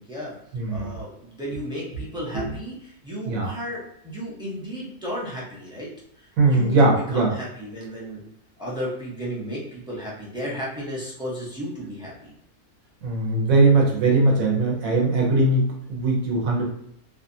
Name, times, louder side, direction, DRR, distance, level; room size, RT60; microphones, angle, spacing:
voice 1, 0.0-0.3 0.7-5.9 6.2-8.2 8.6-12.3, equal, 5° right, -6 dB, 0.4 m, -34 dB
voice 2, 0.5-0.9 2.3-2.5 3.3-3.5 6.4-7.3 13.0-16.7, right 2 dB, 70° right, -2 dB, 1.1 m, -20 dB
2.6 x 2.4 x 2.6 m, 0.72 s
omnidirectional pair, 1.6 m